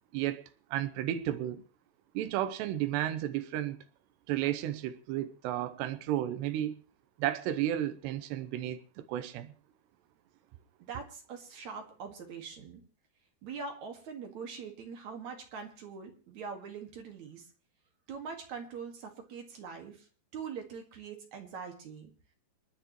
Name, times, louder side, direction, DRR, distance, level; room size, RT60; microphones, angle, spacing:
voice 1, 0.1-0.4 0.7-1.7 2.1-3.8 4.3-6.8 7.2-9.5, right 12 dB, 85° right, 3.0 m, -33 dB
voice 2, 10.8-12.8 13.4-17.4 18.1-20.1 20.3-22.1, right 5 dB, 50° right, 2.8 m, -43 dB
29.0 x 10.5 x 3.1 m
omnidirectional pair, 4.8 m